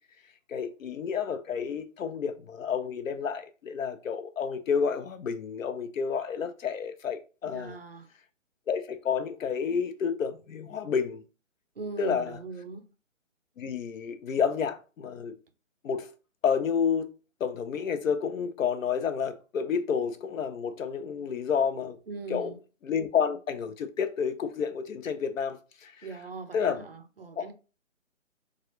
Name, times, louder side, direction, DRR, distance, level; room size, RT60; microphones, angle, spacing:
voice 1, 0.5-7.8 8.7-11.2 12.0-12.4 13.6-15.3 15.8-16.1 16.4-22.0 22.3-22.5 22.8-25.9 26.5-26.8 27.4-27.5, left 6 dB, 75° left, 0.7 m, -30 dB
voice 2, 7.4-8.1 11.8-12.9 22.1-22.6 26.0-27.5, right 4 dB, 50° right, 0.4 m, -40 dB
3.0 x 2.3 x 2.9 m
hypercardioid pair, 175°, 39 cm